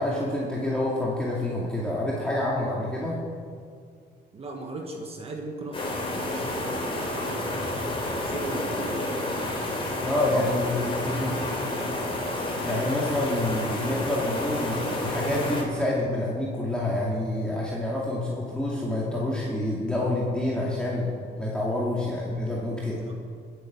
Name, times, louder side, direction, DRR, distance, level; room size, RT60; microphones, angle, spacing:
voice 1, 0.0-3.2 10.0-11.4 12.6-21.1 21.4-23.0, left 1 dB, 5° left, -5 dB, 2.3 m, -27 dB
voice 2, 4.3-9.1 23.1-23.2, right 2 dB, 30° right, 2 dB, 1.6 m, -39 dB
sound 1, 5.7-15.6, left 1 dB, 30° left, 3.3 m, -30 dB
21.0 x 8.4 x 6.1 m, 2.2 s
cardioid pair, 130°, 18 cm